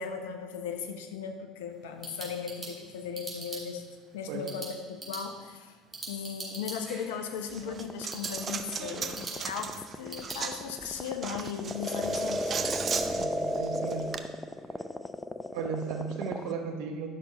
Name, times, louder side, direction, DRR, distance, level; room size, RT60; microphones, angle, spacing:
voice 1, 0.0-3.8 4.1-5.8 6.1-12.6, left 7 dB, 75° left, 6 dB, 0.8 m, -37 dB
sound 1, 1.7-10.4, right 2 dB, 15° right, 2.8 m, -45 dB
Coin (dropping), 7.5-14.2, right 6 dB, 40° right, 0.6 m, -37 dB
sound 2, 7.6-16.5, left 1 dB, 10° left, 0.5 m, -34 dB
voice 2, 13.2-14.1 15.5-17.1, right 5 dB, 65° right, 4 dB, 1.0 m, -35 dB
10.5 x 6.1 x 4.0 m, 1.5 s
hypercardioid pair, 65°, 0 cm